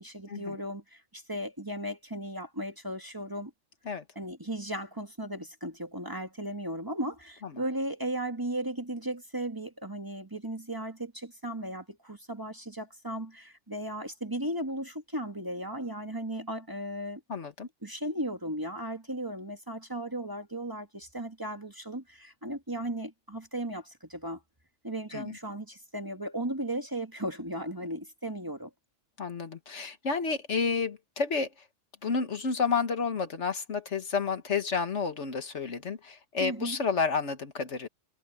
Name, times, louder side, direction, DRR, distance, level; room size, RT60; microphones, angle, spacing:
voice 1, 0.0-3.5 4.2-17.2 17.8-24.4 24.8-28.7 36.4-36.8, right 1 dB, 15° right, 1.7 m, -36 dB
voice 2, 17.3-17.7 25.1-25.4 29.2-31.5 32.0-37.9, left 5 dB, 65° left, 1.7 m, -30 dB
omnidirectional pair, 1.3 m